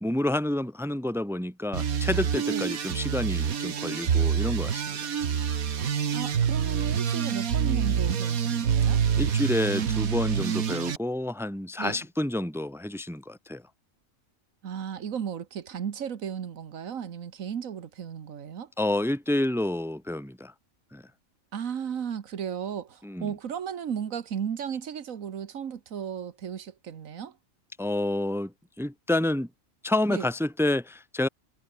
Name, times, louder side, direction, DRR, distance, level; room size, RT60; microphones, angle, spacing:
voice 1, 0.0-4.8 9.2-13.6 18.8-20.5 20.9-21.0 23.0-23.3 27.8-29.5 29.8-31.3, left 1 dB, ahead, 1.5 m, -29 dB
sound 1, 1.7-11.0, right 7 dB, 90° right, 1.8 m, -26 dB
voice 2, 6.1-9.0 11.8-12.0 14.6-18.7 21.5-27.3 30.1-30.3, right 8 dB, 70° right, 1.6 m, -35 dB
omnidirectional pair, 1.4 m